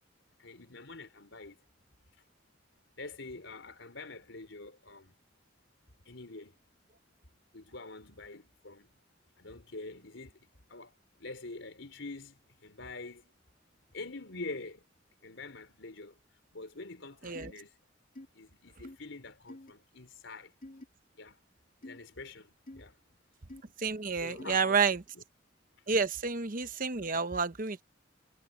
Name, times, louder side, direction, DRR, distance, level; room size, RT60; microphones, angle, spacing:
voice 1, 0.4-1.6 3.0-5.1 6.1-6.5 7.5-8.9 9.4-10.4 10.7-13.3 13.9-14.8 15.2-16.2 16.5-17.8 18.3-20.5 21.1-21.4 21.8-23.0 24.2-25.2, left 3 dB, 85° left, 3.8 m, -46 dB
sound 1, 17.3-17.5 18.1-18.3 18.8-19.0 19.5-19.7 20.6-20.9 21.8-22.0 22.7-22.8 23.5-23.6 24.4-24.6, left 1 dB, 45° left, 2.5 m, -47 dB
voice 2, 23.8-25.0 25.9-27.8, right 5 dB, 45° right, 1.0 m, -30 dB
head